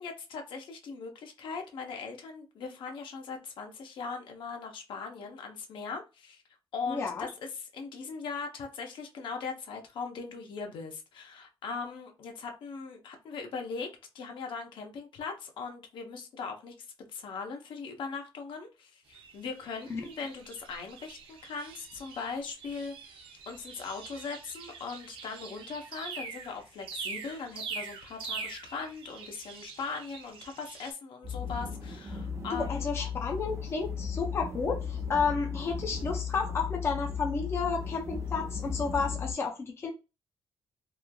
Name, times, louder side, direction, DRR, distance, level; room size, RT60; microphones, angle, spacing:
voice 1, 0.0-6.4 6.7-13.9 14.1-16.7 17.1-32.9 35.4-35.5, left 5 dB, 65° left, 0.7 m, -40 dB
voice 2, 6.9-7.3 19.9-20.0 32.5-39.9, left 4 dB, 30° left, 0.5 m, -31 dB
sound 1, 19.1-30.9, right 5 dB, 75° right, 0.6 m, -44 dB
sound 2, 31.2-39.3, left 6 dB, 30° right, 0.5 m, -36 dB
3.0 x 2.4 x 2.2 m
cardioid pair, 145°, 9 cm